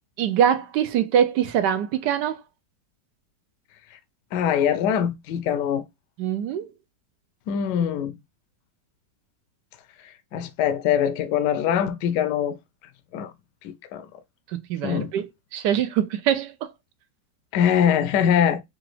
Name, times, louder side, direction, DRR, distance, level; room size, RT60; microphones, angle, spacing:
voice 1, 0.2-2.4 6.2-6.7 14.7-16.7, right 9 dB, 80° right, 1.2 m, -23 dB
voice 2, 4.3-5.8 7.5-8.2 10.0-12.6 13.1-13.3 13.6-14.1 14.8-15.1 17.5-18.6, left 9 dB, 75° left, 1.2 m, -23 dB
4.8 x 2.3 x 3.1 m
omnidirectional pair, 1.9 m